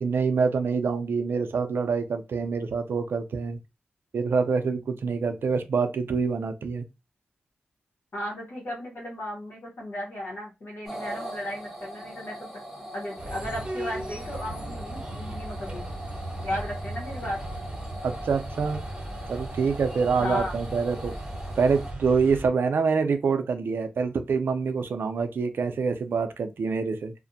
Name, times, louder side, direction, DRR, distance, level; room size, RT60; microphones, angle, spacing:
voice 1, 0.0-3.6 4.1-6.8 18.0-18.8 19.3-21.1 21.6-27.1, right 5 dB, 80° right, 0.4 m, -26 dB
voice 2, 8.1-12.5 12.9-15.9 16.4-17.4 20.2-20.6, left 1 dB, 80° left, 0.9 m, -35 dB
sound 1, 10.9-21.9, equal, ahead, 0.9 m, -41 dB
sound 2, 13.2-22.5, right 1 dB, 25° right, 0.6 m, -37 dB
2.4 x 2.1 x 2.6 m
cardioid pair, 60°, 4 cm